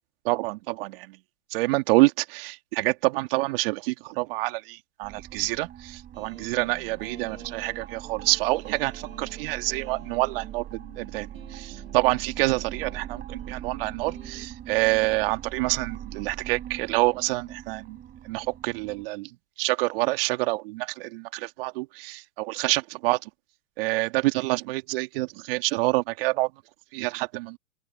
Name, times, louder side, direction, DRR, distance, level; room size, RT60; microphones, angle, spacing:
voice 1, 0.2-1.2 1.5-10.7 11.0-18.0 18.2-19.3 19.6-23.3 23.8-26.5 26.9-27.6, right 22 dB, 45° right, 2.7 m, -27 dB
sound 1, 5.0-19.1, right 10 dB, 20° right, 5.2 m, -42 dB
sound 2, 6.1-14.5, right 7 dB, 80° right, 7.6 m, -47 dB
open air
hypercardioid pair, 125°, 40 cm